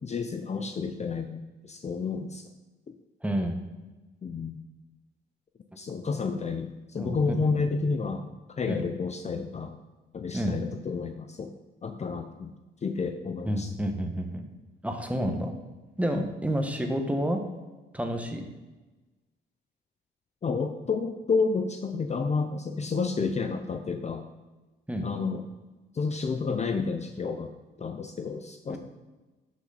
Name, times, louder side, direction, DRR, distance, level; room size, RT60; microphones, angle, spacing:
voice 1, 0.0-2.5 4.2-4.6 5.8-9.8 10.1-11.5 11.8-12.5 12.8-13.7 16.1-16.2 20.4-24.3 25.0-25.4 25.9-27.5 27.8-28.8, left 4 dB, 35° left, 7 dB, 0.7 m, -30 dB
voice 2, 3.2-3.6 7.0-7.7 8.7-8.8 10.3-10.6 13.4-14.4 14.8-15.5 16.0-17.4 17.9-18.5 24.9-25.1 28.7-28.8, equal, 5° right, 4 dB, 1.4 m, -29 dB
12.0 x 6.1 x 4.2 m, 1.2 s
cardioid pair, 90°, 20 cm